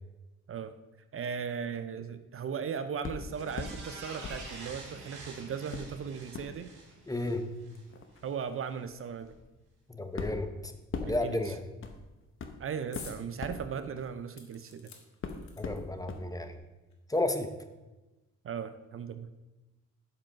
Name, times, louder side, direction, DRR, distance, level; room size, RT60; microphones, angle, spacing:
voice 1, 1.1-6.7 8.2-9.3 11.1-11.5 12.6-14.9 18.4-19.3, right 7 dB, 45° right, 11 dB, 0.6 m, -37 dB
sound 1, 3.0-3.8 4.2-5.2 5.7-14.8 15.2-16.2 16.6-16.7, left 4 dB, 40° left, 1.0 m, -42 dB
sound 2, 3.3-7.8 8.2-8.3, right 3 dB, 75° right, 2.1 m, -47 dB
voice 2, 7.1-7.4 9.9-10.7 11.0-11.6 15.6-16.6 17.1-17.5, left 2 dB, 10° left, 7 dB, 0.8 m, -32 dB
sound 3, 12.9-13.2 13.6-13.7 14.3-16.0 16.9-17.0 17.3-17.4, left 6 dB, 65° left, 1.5 m, -49 dB
7.2 x 5.2 x 5.6 m, 1.1 s
cardioid pair, 90°, 30 cm